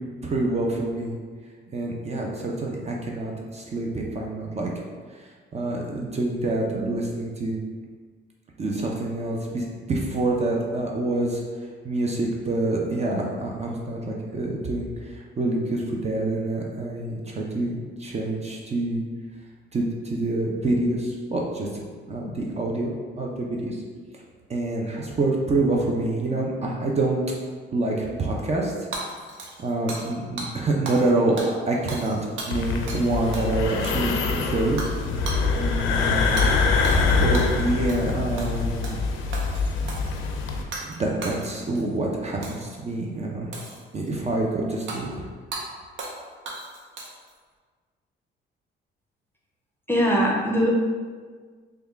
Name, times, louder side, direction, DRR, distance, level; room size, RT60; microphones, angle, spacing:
voice 1, 0.2-1.2 1.7-4.7 5.5-7.6 8.6-11.4 11.8-19.0 19.7-21.8 22.1-23.8 24.5-27.2 27.7-28.7 29.6-32.2 32.5-34.8 35.6-36.4 37.1-39.0 39.8-39.9 40.8-43.5 43.9-45.3, right 2 dB, 35° right, -1 dB, 0.5 m, -26 dB
Hammer / Shatter, 28.9-30.1 30.4-30.5 30.9-31.1 31.4-33.1 33.3-33.5 33.8-34.3 34.8-35.0 35.3-35.4 36.4-36.5 36.8-37.6 37.9-38.1 38.4-39.0 39.3-40.1 40.7-41.0 41.2-41.8 42.4-42.7 43.5-44.1 44.9-45.0 45.5-45.6 46.0-46.2 46.5-47.3, right 2 dB, 75° right, 0.7 m, -35 dB
sound 1, 32.5-40.6, left 4 dB, 85° left, 0.4 m, -24 dB
voice 2, 49.9-50.7, equal, 10° left, -2 dB, 0.6 m, -21 dB
3.4 x 2.3 x 3.4 m, 1.5 s
cardioid pair, 90°, 20 cm